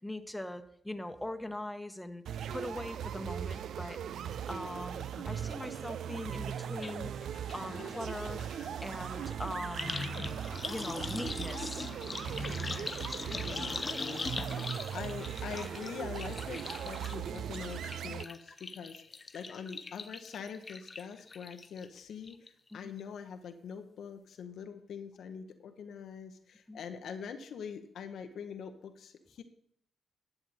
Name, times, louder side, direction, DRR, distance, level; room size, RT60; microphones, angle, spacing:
voice 1, 0.0-2.2 2.5-4.0 4.5-7.1 7.5-8.4 8.8-10.0 10.7-11.9 22.7-22.9 26.7-26.8, left 1 dB, 10° left, 8 dB, 1.0 m, -41 dB
sound 1, 2.2-18.2, right 9 dB, 70° right, 0.4 m, -39 dB
sound 2, 6.8-6.9 7.2-21.8 22.2-22.7 23.0-23.1, left 4 dB, 40° left, 0.5 m, -41 dB
voice 2, 13.3-14.6 14.9-29.4, left 7 dB, 65° left, 7 dB, 0.8 m, -44 dB
11.0 x 7.2 x 4.1 m, 0.66 s
hypercardioid pair, 40°, 0 cm